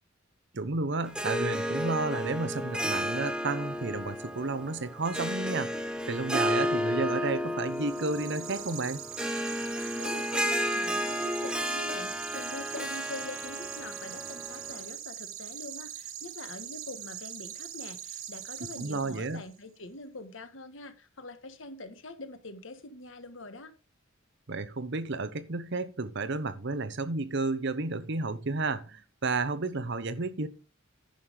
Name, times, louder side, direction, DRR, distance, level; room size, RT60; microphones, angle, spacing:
voice 1, 0.5-5.7 6.1-9.0 18.8-19.4 24.5-30.5, right 3 dB, 55° right, 0.9 m, -32 dB
Harp, 1.0-14.8, equal, 5° right, 0.8 m, -32 dB
sound 1, 7.7-19.5, right 10 dB, 85° right, 1.2 m, -42 dB
voice 2, 9.9-23.7, left 2 dB, 65° left, 1.4 m, -44 dB
10.5 x 5.8 x 5.1 m
head